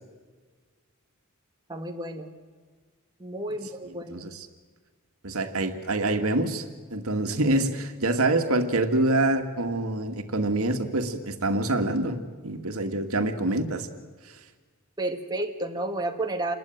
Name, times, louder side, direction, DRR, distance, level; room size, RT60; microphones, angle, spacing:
voice 1, 1.7-2.3 3.2-4.3 15.0-16.5, right 2 dB, 20° right, 3 dB, 1.9 m, -31 dB
voice 2, 4.1-4.5 5.2-6.6 6.9-12.2 12.4-13.9, right 2 dB, 80° right, 6 dB, 2.2 m, -26 dB
28.0 x 21.0 x 9.3 m, 1.4 s
head